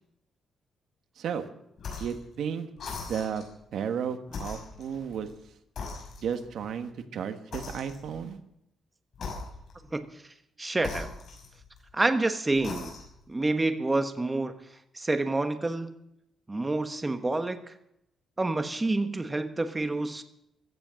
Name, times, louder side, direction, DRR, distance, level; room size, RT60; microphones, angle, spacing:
voice 1, 1.2-1.5 2.0-2.7 3.1-3.4 3.7-5.3 6.2-8.4, right 7 dB, 70° right, 8 dB, 1.6 m, -33 dB
sound 1, 1.8-2.2 2.8-3.5 4.3-5.4 5.8-6.5 7.5-8.3 9.1-9.9 10.8-11.9 12.5-13.2, left 4 dB, 50° left, 6.4 m, -40 dB
voice 2, 9.9-10.2 10.6-11.1 11.9-12.9 13.3-14.5 14.9-15.9 16.5-17.7 18.4-20.2, right 2 dB, 15° right, 8 dB, 1.3 m, -28 dB
16.5 x 13.5 x 6.4 m, 0.79 s
cardioid pair, 150°, 0 cm